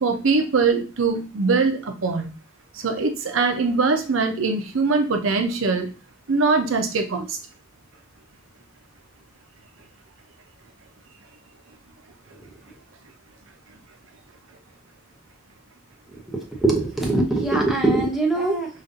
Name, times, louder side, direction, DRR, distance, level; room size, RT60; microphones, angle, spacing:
voice 1, 0.0-2.3 2.7-5.9 6.3-7.4, right 4 dB, 85° right, 5 dB, 0.7 m, -22 dB
voice 2, 16.6-18.7, right 2 dB, ahead, -1 dB, 0.7 m, -21 dB
5.2 x 2.5 x 2.6 m, 0.33 s
head